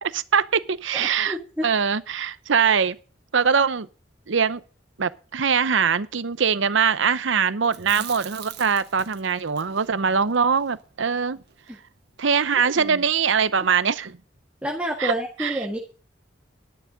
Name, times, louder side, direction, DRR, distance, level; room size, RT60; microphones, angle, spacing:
voice 1, 0.0-1.4 1.6-3.0 3.3-3.9 4.3-4.6 5.0-11.4 12.2-14.2 15.0-15.1 15.4-15.6, right 6 dB, 75° right, 0.7 m, -22 dB
voice 2, 0.9-1.6 7.9-8.0 14.6-15.8, equal, 5° right, 1.5 m, -29 dB
Chewing mastication, 7.6-11.8 12.1-12.2 12.5-13.3, right 6 dB, 55° right, 1.5 m, -42 dB
11.5 x 11.0 x 4.0 m
head